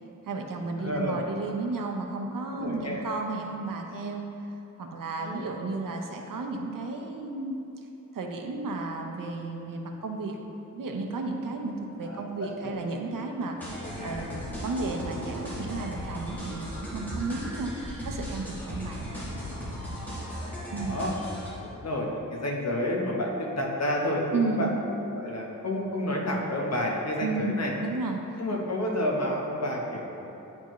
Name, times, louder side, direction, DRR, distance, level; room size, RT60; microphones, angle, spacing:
voice 1, 0.3-7.6 8.1-10.4 10.7-17.7 18.0-19.0 20.7-21.0 24.3-24.8 27.2-28.2, right 3 dB, 75° right, 2 dB, 0.7 m, -33 dB
voice 2, 0.8-1.2 2.6-3.0 5.2-5.5 12.0-12.8 13.8-14.4 20.1-21.1 21.6-24.7 25.0-27.7 28.4-30.3, left 1 dB, 50° left, -1 dB, 0.9 m, -30 dB
sound 1, 13.6-21.5, equal, 5° left, 1.5 m, -36 dB
9.4 x 4.5 x 3.0 m, 2.8 s
wide cardioid pair, 145°, 33 cm